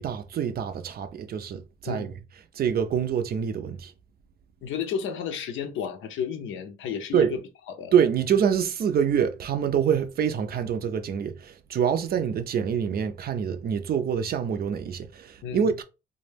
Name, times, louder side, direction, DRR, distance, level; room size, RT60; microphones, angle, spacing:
voice 1, 0.0-2.1 2.5-3.9 7.1-7.3 7.9-15.8, right 8 dB, 50° right, 0.4 m, -26 dB
voice 2, 4.6-7.4 7.8-7.9 15.4-15.7, left 7 dB, 80° left, 0.6 m, -32 dB
2.2 x 2.1 x 3.2 m
cardioid pair, 90°, 20 cm